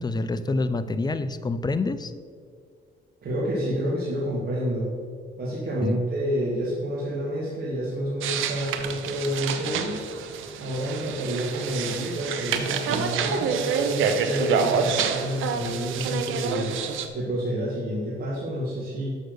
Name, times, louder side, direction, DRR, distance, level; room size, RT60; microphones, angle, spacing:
voice 1, 0.0-2.1 5.8-5.9, left 3 dB, 20° left, 12 dB, 0.5 m, -27 dB
voice 2, 3.2-4.9 5.4-10.0 10.6-16.7 17.1-19.1, equal, 50° right, -6 dB, 1.9 m, -29 dB
sound 1, 8.2-17.1, right 6 dB, 85° right, 0.7 m, -28 dB
6.6 x 6.2 x 6.4 m, 2.1 s
cardioid pair, 90°, 20 cm